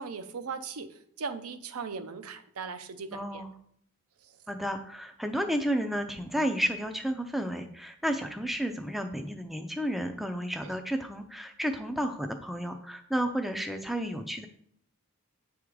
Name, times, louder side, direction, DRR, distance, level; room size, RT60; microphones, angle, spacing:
voice 1, 0.0-3.4 10.6-10.7, right 5 dB, 80° right, 8 dB, 0.6 m, -38 dB
voice 2, 3.1-3.5 4.5-14.5, equal, ahead, 5 dB, 0.4 m, -32 dB
7.6 x 3.6 x 4.7 m, 0.66 s
head